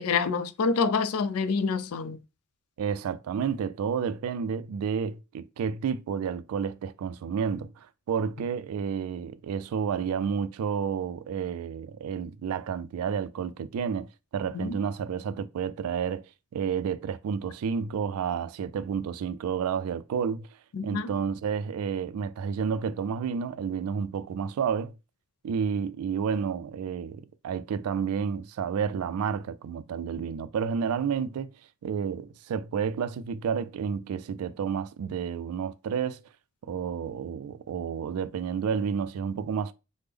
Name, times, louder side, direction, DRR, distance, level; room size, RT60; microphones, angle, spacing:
voice 1, 0.0-2.2 14.5-14.8 20.7-21.1, left 5 dB, 80° left, 0.4 m, -27 dB
voice 2, 2.8-14.1 14.3-16.2 16.5-20.5 20.8-24.9 25.4-31.5 31.8-36.2 36.6-39.7, right 7 dB, 80° right, 0.3 m, -30 dB
3.4 x 2.0 x 3.3 m
head